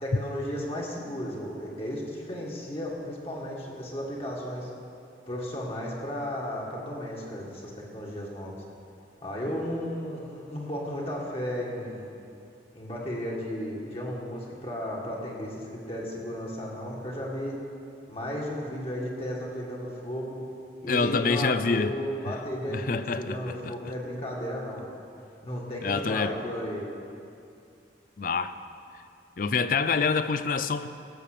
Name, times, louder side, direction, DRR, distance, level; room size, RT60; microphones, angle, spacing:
voice 1, 0.0-4.7 5.3-8.6 9.2-12.1 12.7-17.6 18.1-20.4 20.8-24.9 25.4-26.9, equal, 35° left, -3 dB, 1.9 m, -34 dB
voice 2, 20.9-22.0 22.3-22.4 22.6-23.7 25.8-26.3 28.2-28.5 29.4-30.9, left 4 dB, 50° left, 12 dB, 0.5 m, -26 dB
16.5 x 6.9 x 6.7 m, 2.5 s
head